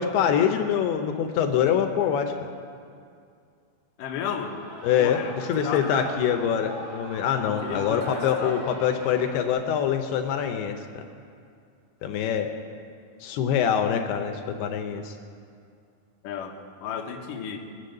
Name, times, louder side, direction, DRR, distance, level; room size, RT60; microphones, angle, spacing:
voice 1, 0.0-2.5 4.8-11.0 12.0-12.5 13.2-15.1, left 8 dB, 85° left, 6 dB, 2.8 m, -25 dB
voice 2, 4.0-4.6 5.0-6.1 7.4-8.6 16.2-17.6, left 7 dB, 65° left, 1 dB, 2.5 m, -34 dB
Shout / Cheering, 4.1-9.5, right 1 dB, 85° right, 6.6 m, -40 dB
22.0 x 8.4 x 6.6 m, 2.3 s
omnidirectional pair, 4.5 m